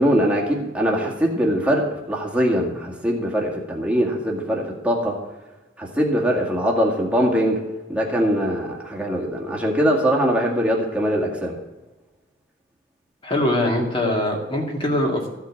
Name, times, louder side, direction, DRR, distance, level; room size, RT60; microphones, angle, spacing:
voice 1, 0.0-5.2 5.8-7.6 7.9-11.5, equal, 5° right, -2 dB, 2.1 m, -22 dB
voice 2, 13.2-15.3, left 1 dB, 25° left, -1 dB, 2.3 m, -22 dB
14.5 x 5.8 x 7.3 m, 1.1 s
head